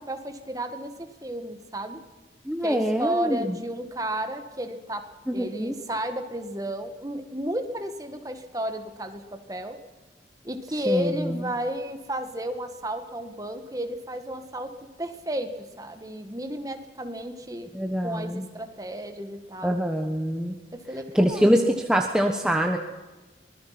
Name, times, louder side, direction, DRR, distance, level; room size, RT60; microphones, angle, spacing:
voice 1, 0.0-2.0 2.6-9.8 10.4-14.7 15.0-15.5 15.8-17.7 18.0-19.8 20.7-21.5, right 1 dB, 20° right, 7 dB, 1.9 m, -32 dB
voice 2, 2.5-3.5 5.3-5.7 10.9-11.4 17.7-18.4 19.6-20.5 21.1-21.6 21.9-22.8, equal, 5° right, 2 dB, 1.2 m, -24 dB
24.5 x 20.5 x 6.0 m, 1.2 s
head